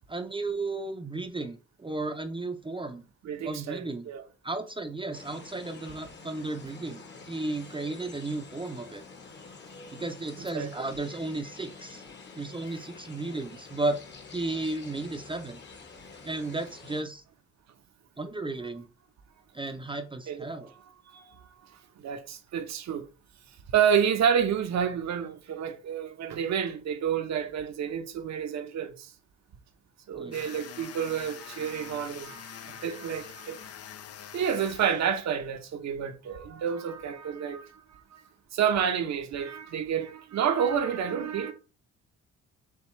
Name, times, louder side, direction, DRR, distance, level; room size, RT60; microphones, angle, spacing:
voice 1, 0.1-3.1 3.4-4.1 4.4-9.0 9.9-12.0 12.4-14.0 14.3-15.6 16.2-17.2 18.2-18.9 19.5-20.7 30.2-30.4, right 2 dB, 15° right, 0.6 m, -34 dB
voice 2, 3.2-4.2 10.5-10.7 20.3-20.5 21.1-21.7 22.0-23.1 23.7-29.1 30.1-33.7 34.3-38.2 38.5-41.5, right 8 dB, 65° right, 0.9 m, -29 dB
sound 1, 5.1-17.0, left 4 dB, 35° left, 1.2 m, -48 dB
sound 2, 30.3-35.5, left 9 dB, 55° left, 0.6 m, -45 dB
7.0 x 2.4 x 3.1 m
cardioid pair, 90°, 30 cm